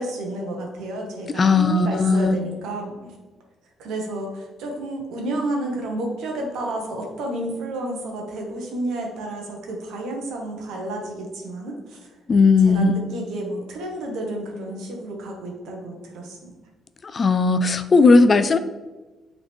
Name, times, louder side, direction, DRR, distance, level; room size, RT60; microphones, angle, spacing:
voice 1, 0.0-3.1 3.8-12.0 12.7-12.9 13.1-16.5, right 1 dB, 85° right, 1 dB, 1.4 m, -31 dB
voice 2, 1.4-2.4 12.3-13.0 17.0-18.6, left 4 dB, 30° left, 12 dB, 0.3 m, -17 dB
8.7 x 3.9 x 3.5 m, 1.2 s
cardioid pair, 130°, 0 cm